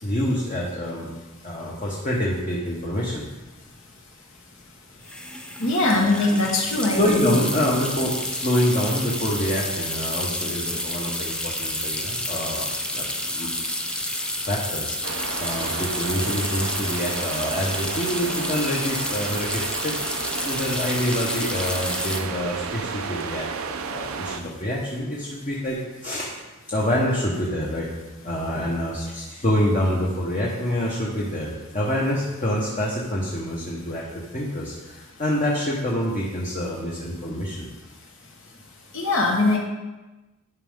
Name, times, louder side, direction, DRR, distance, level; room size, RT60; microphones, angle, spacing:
voice 1, 0.0-1.1 1.4-3.2 6.2-6.3 6.9-13.5 14.4-20.0 20.4-23.5 23.9-26.3 26.7-27.9 28.2-34.0 34.3-37.7, equal, 35° left, -4 dB, 1.0 m, -26 dB
sound 1, 3.1-3.2 3.4-3.7 5.0-22.2, left 1 dB, 5° left, 0.4 m, -30 dB
voice 2, 5.6-7.3 38.9-39.6, left 2 dB, 60° left, -1 dB, 1.3 m, -21 dB
sound 2, 15.0-24.4, right 5 dB, 70° right, 0.5 m, -32 dB
11.0 x 5.2 x 3.7 m, 1.1 s
head